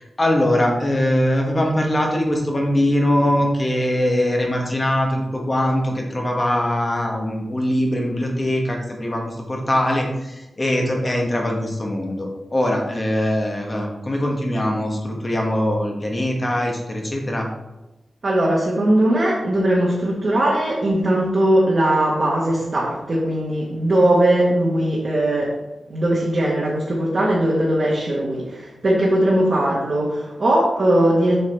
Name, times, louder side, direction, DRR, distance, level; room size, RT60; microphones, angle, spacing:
voice 1, 0.0-17.5, left 1 dB, 20° left, 1 dB, 1.1 m, -22 dB
voice 2, 18.2-25.5 25.9-31.4, right 1 dB, 35° right, -5 dB, 1.2 m, -19 dB
7.7 x 4.7 x 3.3 m, 1.0 s
wide cardioid pair, 180°, 0 cm